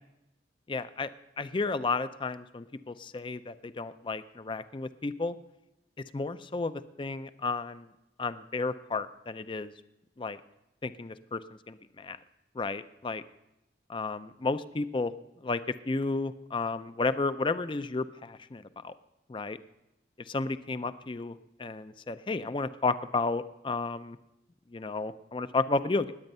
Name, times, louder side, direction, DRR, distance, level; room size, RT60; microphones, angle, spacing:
voice 1, 0.7-5.4 6.1-7.9 8.2-9.7 10.2-10.4 10.8-11.4 11.7-12.2 12.5-13.2 13.9-15.1 15.4-18.9 19.3-19.6 20.2-24.2 24.7-26.1, left 3 dB, 25° left, 13 dB, 0.4 m, -32 dB
19.5 x 8.9 x 5.4 m, 0.89 s
head